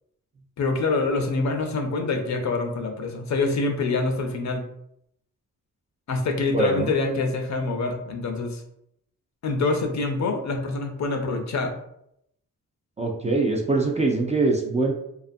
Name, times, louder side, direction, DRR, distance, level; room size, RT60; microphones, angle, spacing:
voice 1, 0.6-4.6 6.1-8.6 9.4-11.7, left 3 dB, 55° left, 4 dB, 0.5 m, -25 dB
voice 2, 6.5-6.9 13.0-14.9, right 3 dB, 20° right, 0 dB, 0.3 m, -23 dB
2.4 x 2.4 x 2.5 m, 0.75 s
cardioid pair, 85°, 35 cm